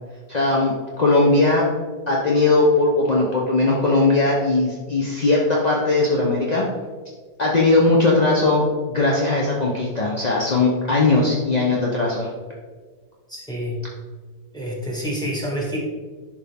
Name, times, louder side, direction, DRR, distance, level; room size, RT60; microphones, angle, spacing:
voice 1, 0.3-1.7 2.1-6.6 7.4-12.3, left 2 dB, 35° left, -3 dB, 0.6 m, -19 dB
voice 2, 13.3-13.8 14.5-15.8, equal, ahead, -4 dB, 1.9 m, -28 dB
11.0 x 5.3 x 3.6 m, 1.5 s
omnidirectional pair, 2.0 m